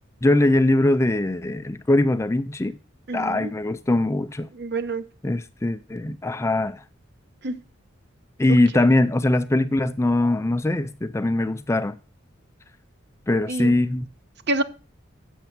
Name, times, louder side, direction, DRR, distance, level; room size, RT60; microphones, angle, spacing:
voice 1, 0.2-2.8 3.1-4.5 5.2-6.8 8.4-12.0 13.3-14.1, left 2 dB, 15° left, 0.4 m, -21 dB
voice 2, 3.1-3.5 4.5-5.0 7.4-7.6 13.5-13.7 14.5-14.6, right 2 dB, 55° right, 0.9 m, -27 dB
8.1 x 6.8 x 6.0 m
head